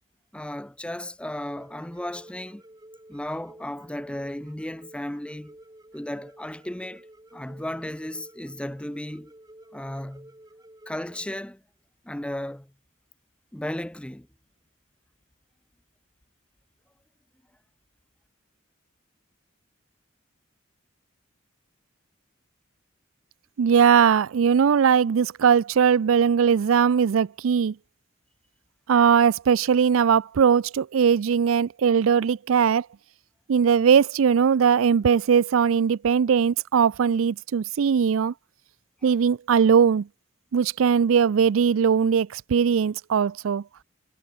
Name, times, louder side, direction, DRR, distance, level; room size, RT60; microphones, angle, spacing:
voice 1, 0.3-2.6 3.1-5.6 5.9-7.1 7.3-9.3 9.7-10.3 10.9-11.6 12.0-12.7 13.5-14.3, left 1 dB, 5° left, 0.6 m, -34 dB
sound 1, 1.2-11.4, right 1 dB, 20° right, 7.9 m, -51 dB
voice 2, 23.6-27.7 28.9-32.9 33.5-38.3 39.0-40.1 40.5-43.6, right 7 dB, 80° right, 0.4 m, -20 dB
head